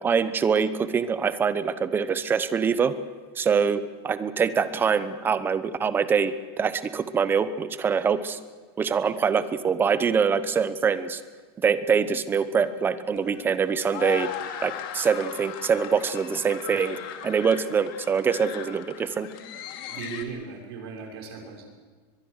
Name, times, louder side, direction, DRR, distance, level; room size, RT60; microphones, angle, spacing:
voice 1, 0.0-2.9 3.4-8.4 8.8-11.2 11.6-14.3 14.6-19.3, right 6 dB, 15° right, 13 dB, 0.9 m, -24 dB
sound 1, 12.3-20.2, left 10 dB, 60° left, 2.6 m, -38 dB
voice 2, 19.9-21.7, right 5 dB, 80° right, 1 dB, 6.2 m, -37 dB
23.0 x 22.5 x 6.6 m, 1.5 s
supercardioid pair, 160°, 13 cm